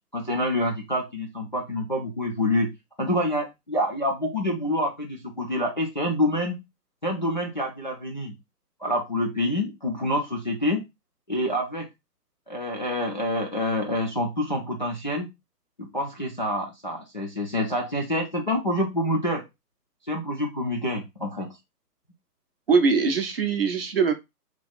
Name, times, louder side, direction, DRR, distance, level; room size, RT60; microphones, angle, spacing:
voice 1, 0.1-2.7 3.0-6.6 7.0-8.3 8.8-10.8 11.3-11.9 12.5-15.3 15.8-19.4 20.1-21.5, left 1 dB, 30° left, 0.4 m, -27 dB
voice 2, 22.7-24.1, right 5 dB, 35° right, 0.6 m, -22 dB
3.0 x 2.3 x 4.1 m
hypercardioid pair, 145°, 49 cm